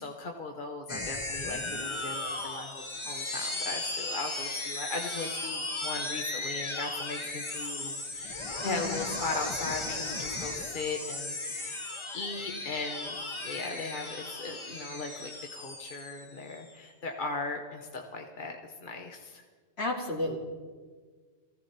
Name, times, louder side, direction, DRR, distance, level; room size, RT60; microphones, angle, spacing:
voice 1, 0.0-11.8 12.1-13.2 13.4-19.4, left 3 dB, 50° left, 2 dB, 1.1 m, -38 dB
sound 1, 0.9-16.7, left 2 dB, 25° left, 1.1 m, -36 dB
voice 2, 8.6-9.0 19.8-20.4, left 1 dB, 70° left, -2 dB, 2.7 m, -32 dB
19.0 x 15.0 x 4.2 m, 1.5 s
omnidirectional pair, 1.1 m